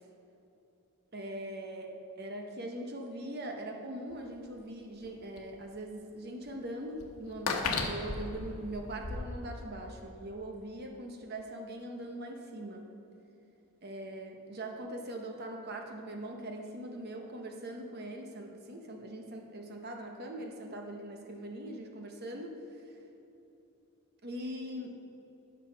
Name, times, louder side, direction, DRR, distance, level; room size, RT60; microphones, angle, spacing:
voice 1, 1.1-1.9 2.2-12.9 13.8-22.8 24.2-25.0, right 1 dB, 45° right, 2 dB, 0.9 m, -41 dB
sound 1, 4.1-4.2 5.0-5.1 5.4-5.5 6.5-6.6 7.0-9.2, left 3 dB, 90° left, 1.1 m, -34 dB
10.5 x 6.2 x 5.8 m, 3.0 s
head